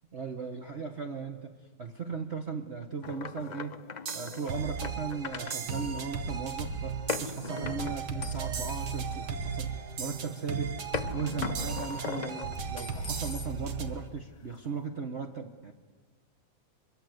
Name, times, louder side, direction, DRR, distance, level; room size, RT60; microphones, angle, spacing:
voice 1, 0.1-3.8 4.1-10.8 11.1-15.7, right 5 dB, 40° right, 4 dB, 1.4 m, -37 dB
sound 1, 3.0-5.6 7.1-9.7 10.9-13.8, left 5 dB, 90° left, 0.3 m, -39 dB
sound 2, 4.1-4.6 5.5-6.0 7.1-7.6 8.5-9.0 10.0-10.5 11.6-12.1 13.1-13.6, right 7 dB, 80° right, 2.2 m, -40 dB
sound 3, 4.5-14.1, right 5 dB, 60° right, 2.1 m, -36 dB
25.0 x 23.0 x 8.1 m, 1.5 s
omnidirectional pair, 2.1 m